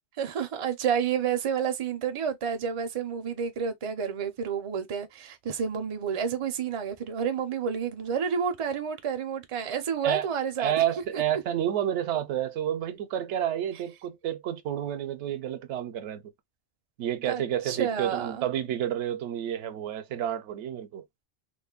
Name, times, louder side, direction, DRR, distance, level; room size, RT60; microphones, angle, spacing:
voice 1, 0.2-10.7 11.1-11.2 17.3-18.5, right 7 dB, 45° right, 0.4 m, -30 dB
voice 2, 10.6-16.2 17.0-21.0, right 10 dB, 80° right, 0.9 m, -30 dB
3.1 x 2.1 x 2.3 m
omnidirectional pair, 1.2 m